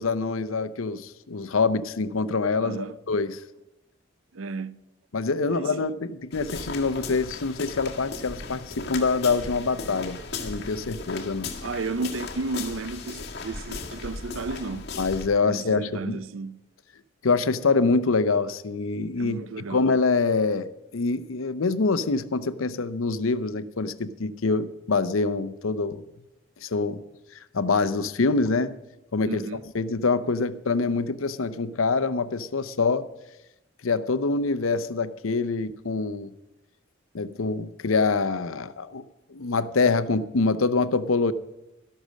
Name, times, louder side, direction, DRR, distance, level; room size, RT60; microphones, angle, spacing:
voice 1, 0.0-3.4 5.1-11.5 15.0-16.2 17.2-26.0 26.6-27.0 27.5-28.8 29.1-29.4 29.7-33.1 33.8-36.3 37.1-39.0 39.3-41.3, left 4 dB, 80° left, 0.7 m, -25 dB
voice 2, 2.6-3.0 4.3-4.8 5.5-5.7 11.6-14.9 15.4-16.6 19.2-19.9 29.2-29.6, right 3 dB, 75° right, 0.6 m, -33 dB
sound 1, 6.3-15.3, left 3 dB, 50° left, 1.7 m, -37 dB
13.0 x 11.5 x 6.3 m
head